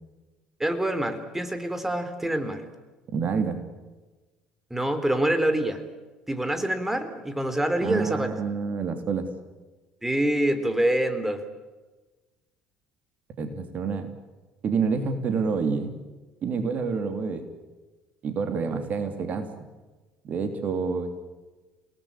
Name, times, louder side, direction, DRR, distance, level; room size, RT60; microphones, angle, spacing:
voice 1, 0.6-2.6 4.7-5.8 6.3-8.3 10.0-11.4, right 1 dB, 10° right, 9 dB, 3.5 m, -26 dB
voice 2, 3.1-3.6 7.8-9.3 13.4-14.1 14.6-15.9 16.4-17.4 18.2-19.5 20.2-21.2, right 5 dB, 45° right, 7 dB, 3.1 m, -28 dB
30.0 x 18.5 x 8.8 m, 1.2 s
figure-of-eight pair, 60°, 4 cm